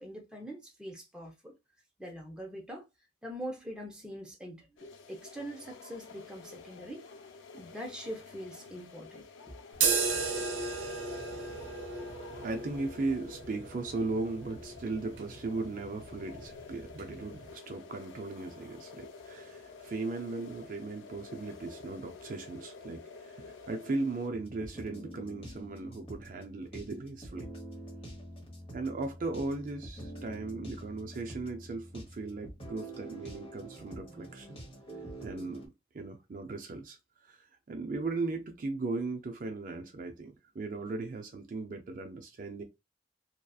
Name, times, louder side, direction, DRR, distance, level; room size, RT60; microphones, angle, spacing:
voice 1, 0.0-1.5 2.0-2.8 3.2-7.1 7.5-9.2, equal, 5° right, 0.6 m, -43 dB
sound 1, 4.8-24.3, left 5 dB, 80° left, 0.4 m, -51 dB
sound 2, 9.7-17.5, right 5 dB, 85° right, 0.6 m, -36 dB
voice 2, 12.2-27.5 28.7-34.6 35.2-42.6, right 3 dB, 45° right, 0.4 m, -37 dB
sound 3, 24.3-35.6, right 1 dB, 30° left, 1.1 m, -46 dB
2.7 x 2.4 x 2.3 m
head